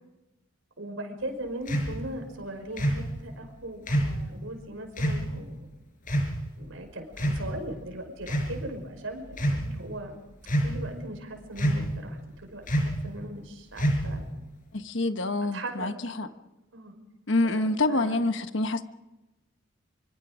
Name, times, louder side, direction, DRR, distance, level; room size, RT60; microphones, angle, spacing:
voice 1, 0.8-5.7 6.6-10.1 10.6-14.2 15.5-15.9 16.2-16.3 16.7-17.0 17.4-18.2, right 1 dB, 70° right, 5.4 m, -39 dB
sound 1, 1.7-1.9 2.8-3.0 3.9-4.2 5.0-5.2 6.1-6.3 7.1-7.7 8.2-8.5 9.3-9.6 10.5-10.9 11.6-12.0 12.7-13.0 13.8-14.2, equal, 40° left, 5.4 m, -26 dB
voice 2, 14.7-16.3 17.3-18.8, left 2 dB, 60° left, 1.3 m, -27 dB
25.5 x 25.0 x 5.1 m
head